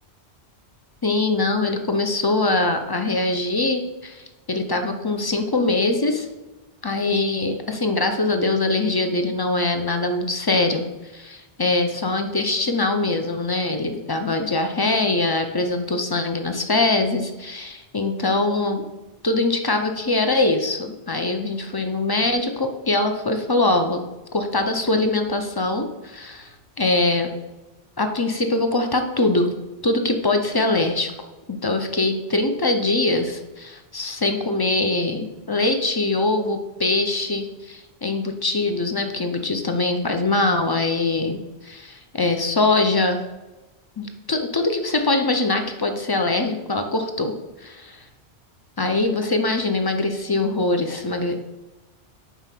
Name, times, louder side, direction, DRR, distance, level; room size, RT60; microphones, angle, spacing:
voice 1, 1.0-6.3 6.8-10.8 11.1-18.8 19.2-24.0 24.3-27.3 28.0-29.5 29.8-31.1 31.5-41.4 41.6-43.2 44.0-47.3 47.6-48.0 48.8-51.3, left 2 dB, 30° left, 6 dB, 0.5 m, -23 dB
5.6 x 4.7 x 5.7 m, 1.1 s
omnidirectional pair, 1.1 m